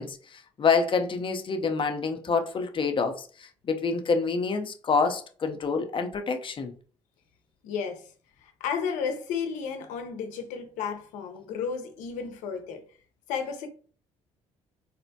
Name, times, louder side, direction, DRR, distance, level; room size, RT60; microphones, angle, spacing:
voice 1, 0.0-6.7, left 4 dB, 40° left, 0.6 m, -27 dB
voice 2, 7.6-8.1 8.4-12.8 13.3-13.7, left 6 dB, 75° left, 0.7 m, -33 dB
4.2 x 2.1 x 2.7 m
supercardioid pair, 65°, 13 cm